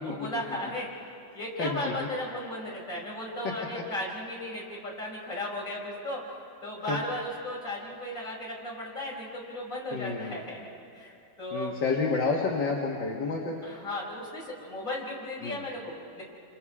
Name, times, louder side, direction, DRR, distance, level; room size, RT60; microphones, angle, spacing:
voice 1, 0.0-0.9 1.3-10.7 10.9-11.7 13.6-16.2, left 1 dB, 45° left, -4 dB, 5.7 m, -36 dB
voice 2, 1.6-1.9 6.9-7.0 9.9-10.4 11.5-13.6 15.4-15.6, left 4 dB, 75° left, -2 dB, 2.4 m, -29 dB
29.5 x 26.0 x 4.9 m, 2.6 s
omnidirectional pair, 2.0 m